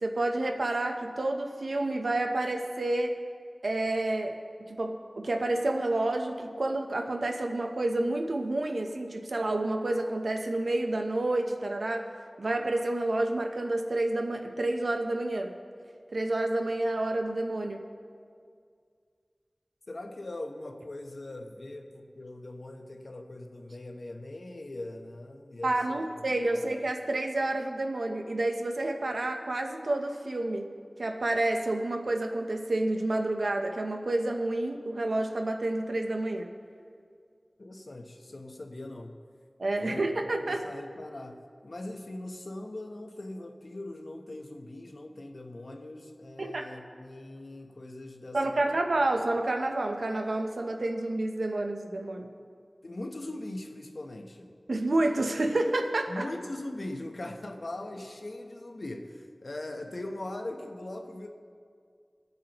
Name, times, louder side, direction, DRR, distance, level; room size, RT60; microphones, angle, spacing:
voice 1, 0.0-3.2 3.6-4.4 4.7-12.1 12.4-15.6 16.1-17.9 25.6-30.7 31.0-36.5 39.6-40.6 46.4-46.7 48.3-52.3 54.7-56.3, right 2 dB, 90° right, 4 dB, 0.8 m, -29 dB
voice 2, 19.9-26.1 26.4-26.7 37.6-39.2 39.7-48.7 52.8-54.6 56.1-61.3, left 1 dB, 70° left, 3 dB, 0.9 m, -41 dB
22.5 x 8.1 x 3.0 m, 2.2 s
wide cardioid pair, 65°, 0 cm